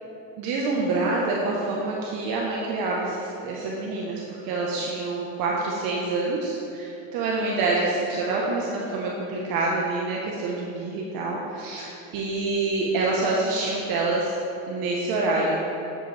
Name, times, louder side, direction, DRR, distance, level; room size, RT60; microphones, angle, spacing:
voice 1, 0.4-14.4 14.7-15.6, right 3 dB, 55° right, -3 dB, 1.4 m, -26 dB
9.9 x 8.4 x 3.5 m, 2.8 s
supercardioid pair, 115°, 41 cm